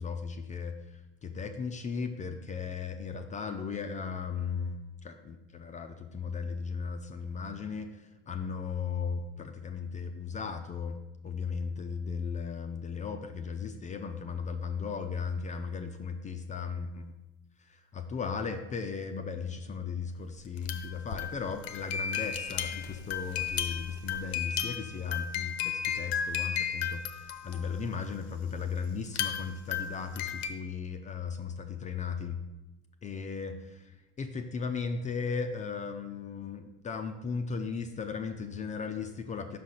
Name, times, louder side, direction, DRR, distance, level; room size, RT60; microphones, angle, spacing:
voice 1, 0.0-11.0 11.2-17.1 17.6-32.4 33.0-39.6, left 5 dB, 20° left, 7 dB, 0.5 m, -36 dB
sound 1, 20.4-28.0 29.1-30.5, left 8 dB, 60° left, 0.8 m, -34 dB
5.5 x 5.0 x 5.6 m, 1.0 s
figure-of-eight pair, 70°, 35 cm